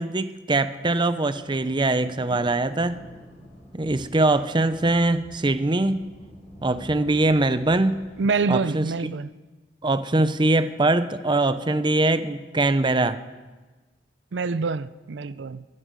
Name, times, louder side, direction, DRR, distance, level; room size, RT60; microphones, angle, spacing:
voice 1, 0.0-3.0 3.7-6.0 6.6-8.0 8.5-9.1 9.8-13.2, right 2 dB, 25° right, 12 dB, 0.7 m, -22 dB
sound 1, 1.3-8.4, equal, 40° left, 6.3 m, -48 dB
voice 2, 8.2-9.3 14.3-15.6, right 4 dB, 75° right, 15 dB, 0.5 m, -26 dB
23.0 x 11.0 x 5.2 m, 1.2 s
head